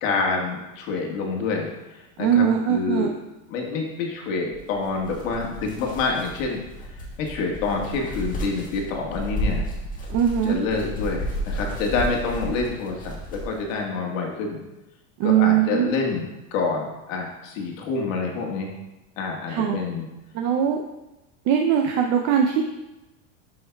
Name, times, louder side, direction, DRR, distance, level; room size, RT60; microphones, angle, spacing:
voice 1, 0.0-3.1 3.5-6.6 7.0-9.7 10.4-14.6 15.2-18.7 19.2-20.1, left 4 dB, 80° left, 0 dB, 1.5 m, -27 dB
voice 2, 2.2-3.1 10.1-10.6 15.2-15.9 19.5-19.8 20.3-20.8 21.5-22.6, right 9 dB, 45° right, 3 dB, 0.5 m, -20 dB
sound 1, 4.5-13.8, equal, 20° left, 1.4 m, -32 dB
10.5 x 5.5 x 2.3 m, 1.0 s
supercardioid pair, 140°, 39 cm